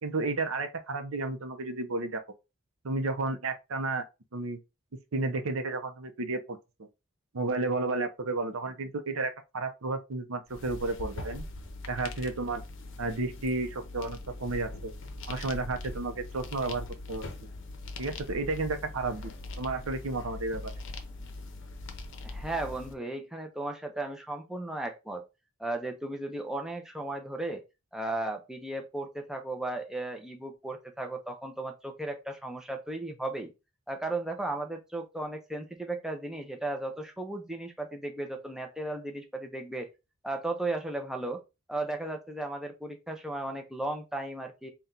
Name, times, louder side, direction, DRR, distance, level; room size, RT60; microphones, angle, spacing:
voice 1, 0.0-2.2 2.8-4.0 4.3-4.6 5.1-6.9 7.3-11.4 11.9-12.6 13.0-14.9 15.3-17.2 18.0-19.3 19.6-20.7, right 3 dB, 65° right, 0.6 m, -32 dB
sound 1, 10.5-22.9, left 2 dB, 60° left, 0.7 m, -41 dB
voice 2, 22.2-25.2 25.6-27.6 27.9-33.5 33.9-39.9 40.2-41.4 41.7-44.7, right 2 dB, ahead, 0.4 m, -35 dB
4.2 x 2.3 x 3.7 m
head